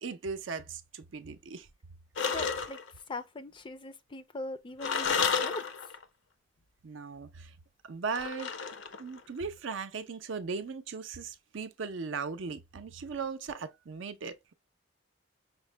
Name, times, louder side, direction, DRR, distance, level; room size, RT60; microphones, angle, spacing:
voice 1, 0.0-1.7 6.8-7.5 7.8-8.5 9.0-14.5, right 5 dB, 80° right, 0.6 m, -38 dB
sound 1, 2.2-2.9 4.8-6.0 8.1-9.2, left 6 dB, 70° left, 0.6 m, -31 dB
voice 2, 2.2-2.8 3.1-6.0, left 2 dB, 25° left, 0.4 m, -41 dB
5.7 x 2.1 x 3.2 m
head